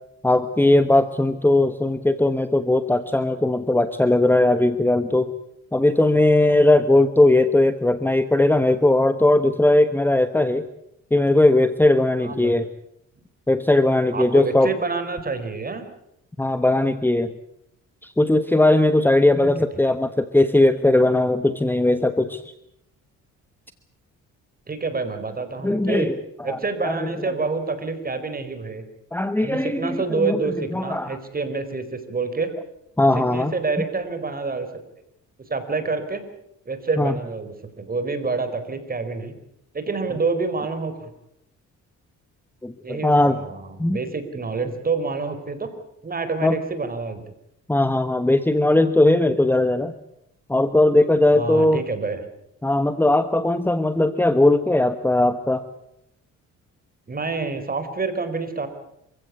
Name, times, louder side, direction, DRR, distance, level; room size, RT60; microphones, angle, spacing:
voice 1, 0.2-5.3 5.7-10.6 11.1-12.7 13.5-14.7 16.4-17.3 18.0-22.4 25.6-26.2 26.5-27.3 29.1-30.4 30.7-31.2 33.0-33.5 37.0-37.1 42.6-43.4 43.8-44.0 46.4-46.6 47.7-49.9 50.5-51.8 52.6-55.6, left 2 dB, 5° left, 11 dB, 1.1 m, -19 dB
voice 2, 12.2-12.5 14.1-15.8 19.4-19.5 24.7-26.1 26.4-28.8 29.4-32.5 33.1-34.7 35.5-36.2 36.6-39.3 39.7-41.1 42.8-45.7 46.0-47.2 51.3-52.2 57.1-58.7, right 4 dB, 30° right, 9 dB, 4.5 m, -27 dB
27.0 x 16.0 x 8.4 m, 0.78 s
cardioid pair, 90°, 30 cm